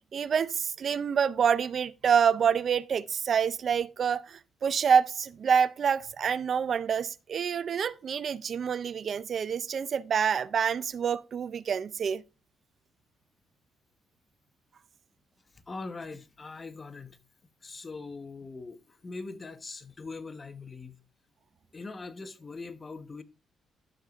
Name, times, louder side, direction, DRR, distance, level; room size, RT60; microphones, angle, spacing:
voice 1, 0.0-12.2, right 7 dB, 50° right, 0.4 m, -27 dB
voice 2, 15.5-17.2 17.6-21.0 21.7-23.2, left 3 dB, 30° left, 0.9 m, -42 dB
12.5 x 6.7 x 2.4 m
cardioid pair, 90°, 0 cm